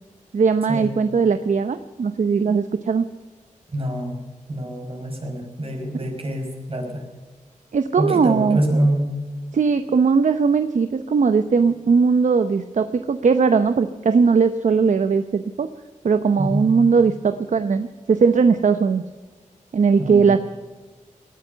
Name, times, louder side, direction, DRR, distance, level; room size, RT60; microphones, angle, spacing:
voice 1, 0.3-3.0 5.9-6.1 7.7-8.6 9.5-15.7 16.0-19.1 19.7-20.4, right 5 dB, 70° right, 10 dB, 0.8 m, -19 dB
voice 2, 3.7-4.2 4.5-7.0 8.0-9.1 16.4-16.7 20.0-20.3, right 1 dB, 45° right, 3 dB, 5.2 m, -25 dB
18.5 x 11.0 x 6.9 m, 1.3 s
wide cardioid pair, 75°, 13 cm